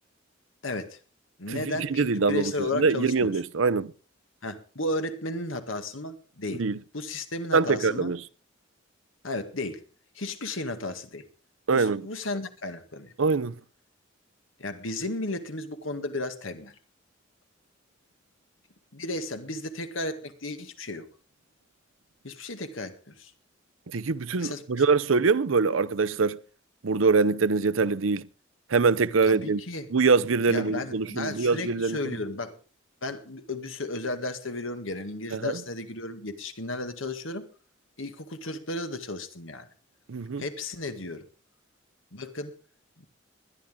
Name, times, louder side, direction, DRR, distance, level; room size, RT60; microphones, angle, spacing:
voice 1, 0.6-1.0 1.4-3.4 4.4-6.7 6.9-8.1 9.2-9.8 10.2-11.3 11.7-13.1 14.6-16.8 18.9-21.1 22.2-23.3 24.4-24.8 29.2-29.9 30.5-32.6 33.0-37.5 38.0-39.7 40.4-41.3 42.1-42.5 43.0-43.1, left 2 dB, 80° left, 1.9 m, -34 dB
voice 2, 1.9-3.9 6.6-6.8 7.5-8.2 11.7-12.0 13.2-13.6 23.9-26.4 26.8-28.3 28.7-29.6 29.9-32.0 35.3-35.6 40.1-40.4, right 4 dB, 80° right, 0.7 m, -24 dB
20.5 x 12.0 x 3.7 m
head